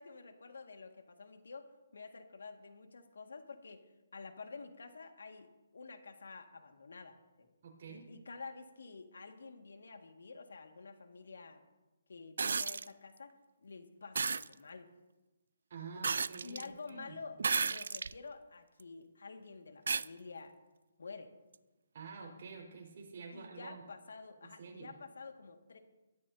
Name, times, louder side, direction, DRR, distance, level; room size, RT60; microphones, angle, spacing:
voice 1, 0.0-3.9 4.1-7.5 7.9-11.6 12.1-13.3 13.6-14.9 15.9-16.0 16.4-20.5 21.0-21.3 23.3-25.8, left 4 dB, 80° left, 5 dB, 2.0 m, -50 dB
voice 2, 7.6-8.1 15.7-17.2 21.9-23.8 24.6-25.0, right 5 dB, 50° right, -1 dB, 5.0 m, -48 dB
sound 1, 12.4-12.9 14.2-14.5 16.0-16.7 17.4-18.1 18.8-18.9 19.9-20.1 21.5-21.6, right 5 dB, 75° right, 0.4 m, -33 dB
22.5 x 13.5 x 2.8 m, 1.1 s
hypercardioid pair, 160°, 0 cm